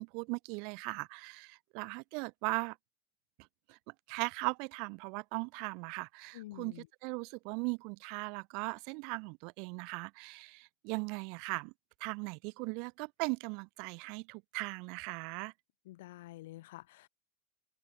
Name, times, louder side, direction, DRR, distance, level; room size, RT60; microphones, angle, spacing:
voice 1, 0.0-2.8 3.7-3.8 4.1-6.7 7.0-11.7 12.0-15.5, right 34 dB, 55° right, 6.4 m, -38 dB
voice 2, 6.3-6.9 15.8-17.1, left 17 dB, 70° left, 6.7 m, -48 dB
hypercardioid pair, 80°, 0 cm